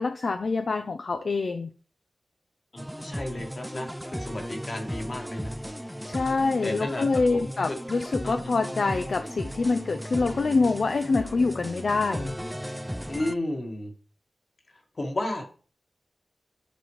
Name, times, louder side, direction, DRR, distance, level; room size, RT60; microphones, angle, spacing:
voice 1, 0.0-1.7 6.1-12.4, left 3 dB, 60° left, 8 dB, 0.5 m, -26 dB
voice 2, 2.7-5.5 6.6-7.8 8.2-8.5 13.1-13.9 15.0-15.4, left 1 dB, 45° left, 3 dB, 1.6 m, -33 dB
sound 1, 2.8-13.3, equal, ahead, 0.3 m, -36 dB
10.0 x 4.3 x 3.2 m, 0.40 s
wide cardioid pair, 75°, 0 cm